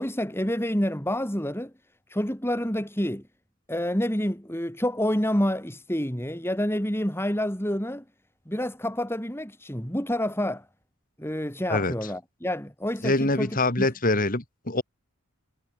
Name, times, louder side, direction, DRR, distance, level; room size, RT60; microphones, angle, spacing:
voice 1, 0.0-1.7 2.1-3.2 3.7-8.0 8.5-10.7 11.2-13.9, equal, 10° left, 4.6 m, -28 dB
voice 2, 13.0-14.8, left 2 dB, 40° left, 3.0 m, -24 dB
head